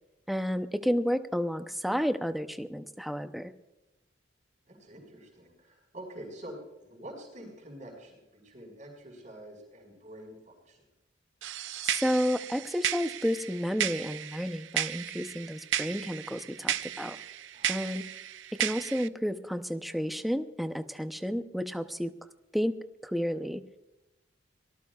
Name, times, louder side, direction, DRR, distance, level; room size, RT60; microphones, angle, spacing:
voice 1, 0.3-3.5 11.8-17.2 17.7-18.0 18.6-22.1 22.5-22.7 23.0-23.6, equal, ahead, 8 dB, 0.6 m, -31 dB
voice 2, 4.7-10.8 17.5-17.9, right 1 dB, 40° right, -1 dB, 5.2 m, -47 dB
sound 1, 11.4-19.1, right 10 dB, 80° right, 0.6 m, -34 dB
24.5 x 19.0 x 2.4 m, 0.99 s
head